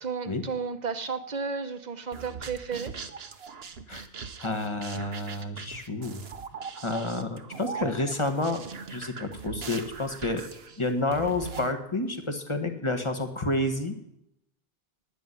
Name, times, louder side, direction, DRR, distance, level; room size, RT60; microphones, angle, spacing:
voice 1, 0.0-2.9 5.7-5.8, right 5 dB, 45° right, 9 dB, 1.2 m, -33 dB
sound 1, 2.1-11.7, right 5 dB, 75° right, 1.3 m, -40 dB
voice 2, 4.4-6.2 6.8-8.6 8.9-10.4 10.8-13.9, left 2 dB, 30° left, 6 dB, 1.7 m, -29 dB
12.0 x 9.4 x 9.9 m, 0.84 s
omnidirectional pair, 1.1 m